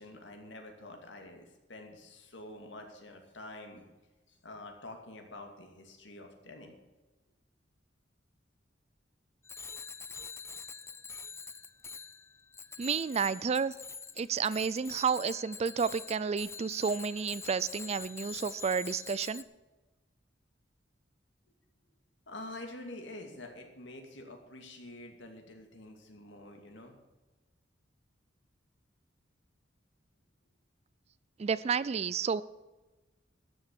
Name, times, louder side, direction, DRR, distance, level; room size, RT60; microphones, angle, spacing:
voice 1, 0.0-3.8 4.3-6.8 22.3-26.9, left 2 dB, 70° left, 4 dB, 2.4 m, -47 dB
Bicycle bell, 9.4-19.4, left 5 dB, 15° left, 0.5 m, -45 dB
voice 2, 12.8-13.7 14.2-19.4 31.4-32.4, right 6 dB, 35° right, 19 dB, 0.4 m, -31 dB
13.0 x 7.1 x 8.4 m, 1.2 s
head